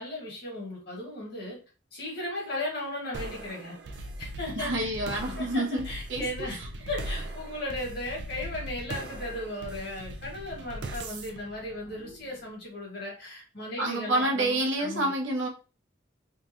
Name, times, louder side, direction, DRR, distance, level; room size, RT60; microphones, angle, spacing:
voice 1, 0.0-1.6 1.9-3.8 4.2-6.6 6.9-15.1, left 1 dB, 55° left, 1.9 m, -36 dB
sound 1, 3.1-12.6, right 1 dB, 65° right, 0.5 m, -40 dB
voice 2, 4.6-5.8 6.1-6.5 13.8-15.5, right 1 dB, 85° right, 0.8 m, -28 dB
3.7 x 2.5 x 2.9 m
head